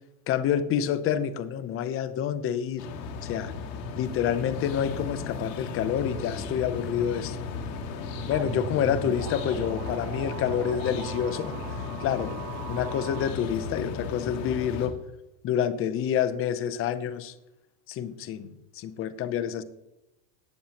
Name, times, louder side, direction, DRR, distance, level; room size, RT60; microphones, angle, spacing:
voice 1, 0.3-2.9 3.2-3.5 3.9-7.4 8.3-12.4 12.7-15.0 15.4-17.3 17.9-19.6, left 9 dB, 25° left, 14 dB, 0.6 m, -28 dB
sound 1, 2.8-14.9, left 4 dB, 80° left, 2.2 m, -35 dB
sound 2, 8.3-13.3, right 12 dB, 40° right, 0.6 m, -39 dB
18.0 x 7.1 x 2.9 m, 0.92 s
supercardioid pair, 140°, 50 cm